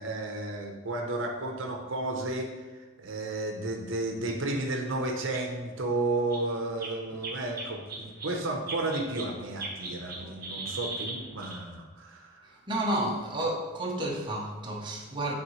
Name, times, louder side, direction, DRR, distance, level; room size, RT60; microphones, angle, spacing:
voice 1, 0.0-2.6 3.0-12.6, right 2 dB, 65° right, 0.7 m, -32 dB
sound 1, 4.3-4.4 5.0-5.1 5.3-5.4 5.7-5.8 6.3-6.5 6.8-9.3 9.6-11.6, right 2 dB, 45° right, 1.0 m, -38 dB
voice 2, 12.7-15.4, right 1 dB, 20° right, 0.8 m, -31 dB
9.2 x 3.6 x 3.1 m
head